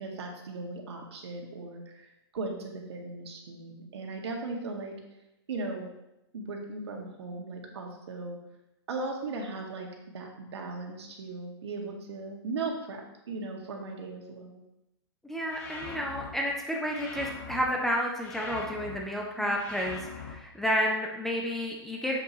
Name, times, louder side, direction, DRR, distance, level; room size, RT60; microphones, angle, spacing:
voice 1, 0.0-5.0 5.5-5.9 6.3-8.4 8.9-14.6 19.4-19.6, right 3 dB, 75° right, 1 dB, 2.0 m, -38 dB
voice 2, 15.3-22.2, equal, ahead, -1 dB, 0.4 m, -31 dB
sound 1, 15.5-16.3 16.9-17.6 18.2-19.0 19.6-20.3, left 4 dB, 35° left, 1.1 m, -41 dB
7.9 x 7.8 x 3.0 m, 0.88 s
hypercardioid pair, 170°, 14 cm